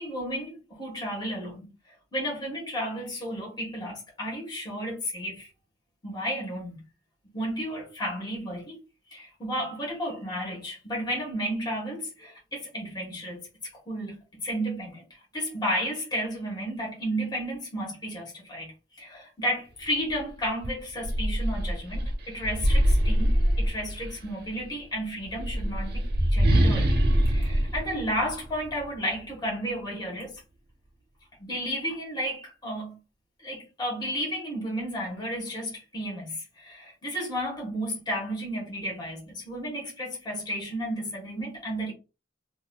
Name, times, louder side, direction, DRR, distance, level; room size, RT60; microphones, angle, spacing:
voice 1, 0.0-1.7 2.1-5.5 6.0-6.8 7.3-8.8 9.1-13.4 13.9-14.2 14.4-15.0 15.3-18.7 19.0-26.9 27.3-30.3 31.4-33.0 33.4-41.9, equal, 25° left, 1.4 m, -32 dB
sound 1, 20.1-20.2 20.6-24.2 25.2-28.8, equal, 60° right, 0.9 m, -24 dB
3.9 x 2.6 x 2.3 m
head